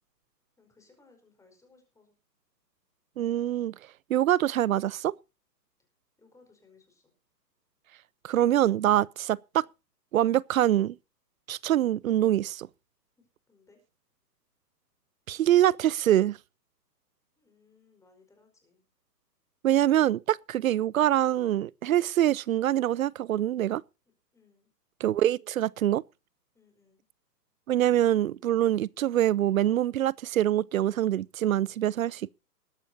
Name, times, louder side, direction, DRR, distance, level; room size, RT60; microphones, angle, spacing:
voice 1, 0.6-2.2 6.2-7.1 13.2-13.8 17.4-18.9 24.3-24.7 26.5-27.0, left 4 dB, 5° left, 4.7 m, -62 dB
voice 2, 3.2-3.7 4.1-5.1 8.2-9.6 10.1-11.0 11.5-12.7 15.3-16.4 19.6-23.8 25.0-26.0 27.7-32.3, right 12 dB, 55° right, 0.5 m, -24 dB
20.5 x 12.0 x 2.8 m
hypercardioid pair, 140°, 49 cm